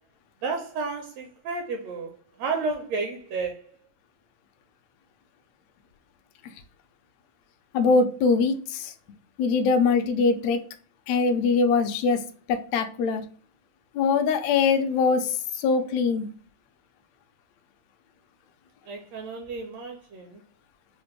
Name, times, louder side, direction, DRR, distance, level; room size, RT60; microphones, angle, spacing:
voice 1, 0.4-3.6 18.9-20.4, right 4 dB, 75° right, 1.6 m, -32 dB
voice 2, 7.7-8.9 9.4-10.6 11.1-12.2 12.5-13.2 14.0-16.3, left 4 dB, 75° left, 1.7 m, -22 dB
5.0 x 2.1 x 3.0 m
omnidirectional pair, 3.3 m